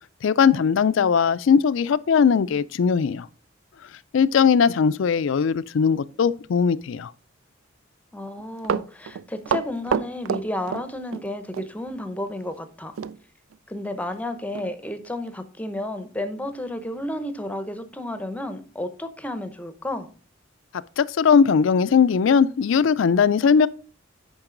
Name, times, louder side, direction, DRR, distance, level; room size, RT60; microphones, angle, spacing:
voice 1, 0.2-3.3 4.1-7.1 21.0-23.7, left 6 dB, 70° left, 0.4 m, -19 dB
voice 2, 8.1-13.0 13.7-20.1, left 1 dB, 5° left, 0.7 m, -32 dB
Run, 8.4-11.3 11.5-11.7 13.0-13.2 13.5-13.6 14.1-14.2 14.5-14.7 15.3-15.4, right 7 dB, 80° right, 0.3 m, -27 dB
8.9 x 5.3 x 3.8 m
head